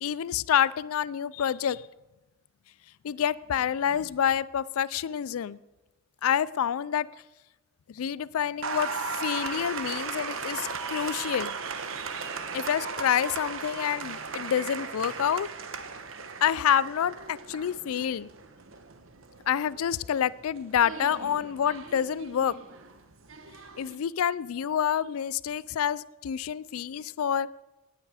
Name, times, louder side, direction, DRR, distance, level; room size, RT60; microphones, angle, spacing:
voice 1, 0.0-1.8 3.0-5.6 6.2-7.1 7.9-8.9 9.2-11.5 12.5-15.5 16.4-18.3 19.5-22.6 23.8-27.5, left 9 dB, 90° left, 20 dB, 0.4 m, -28 dB
Applause, 8.6-23.9, right 5 dB, 70° right, 1.0 m, -37 dB
18.5 x 9.0 x 4.9 m, 1.0 s
head